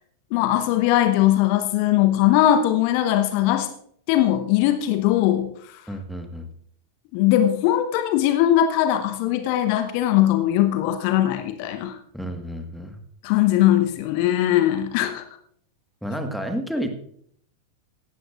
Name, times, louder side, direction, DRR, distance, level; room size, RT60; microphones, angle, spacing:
voice 1, 0.3-3.7 4.1-5.5 7.1-12.0 13.2-15.2, left 12 dB, 45° left, 8 dB, 1.0 m, -20 dB
voice 2, 5.9-6.5 12.1-13.0 16.0-16.9, equal, ahead, 5 dB, 1.6 m, -30 dB
17.0 x 13.0 x 2.5 m, 0.64 s
figure-of-eight pair, 90°, 0 cm